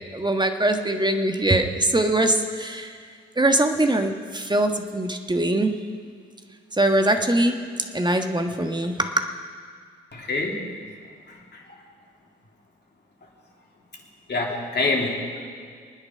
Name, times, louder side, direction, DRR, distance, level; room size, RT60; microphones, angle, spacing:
voice 1, 0.1-3.0 3.4-5.8 6.7-7.6 7.9-9.3, right 1 dB, 15° right, 5 dB, 1.5 m, -22 dB
voice 2, 10.1-10.7 11.3-11.6 14.3-15.5, left 3 dB, 35° left, -1 dB, 3.4 m, -26 dB
21.0 x 9.8 x 5.7 m, 2.1 s
figure-of-eight pair, 40°, 29 cm